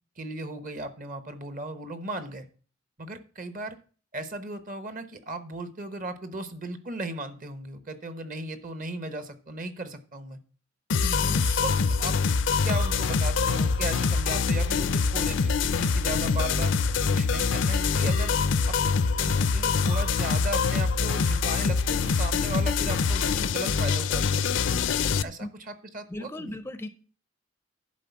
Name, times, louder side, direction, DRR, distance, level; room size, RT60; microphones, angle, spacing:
voice 1, 0.2-2.5 3.0-3.8 4.1-10.4 11.3-12.2 12.6-16.8 17.1-18.3 18.7-18.8 19.2-24.5 25.2-26.6, right 2 dB, 45° right, 10 dB, 1.0 m, -36 dB
sound 1, 10.9-25.2, left 5 dB, 65° left, 0.5 m, -24 dB
voice 2, 11.0-11.4 24.6-25.0 25.4-25.5 26.1-26.9, left 1 dB, 10° left, 11 dB, 0.5 m, -37 dB
11.0 x 4.1 x 7.0 m, 0.40 s
head